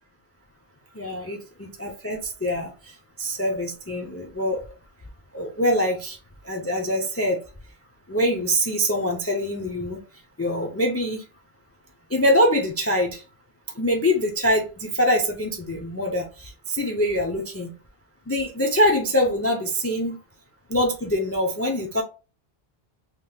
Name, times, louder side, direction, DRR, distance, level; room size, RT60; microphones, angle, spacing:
voice 1, 0.9-2.9 3.2-4.6 5.3-6.2 6.4-7.4 8.1-10.0 10.4-11.2 12.1-13.2 13.8-17.7 18.3-20.2 20.7-22.0, equal, 20° left, 2 dB, 0.4 m, -24 dB
3.4 x 2.9 x 2.2 m, 0.33 s
omnidirectional pair, 1.0 m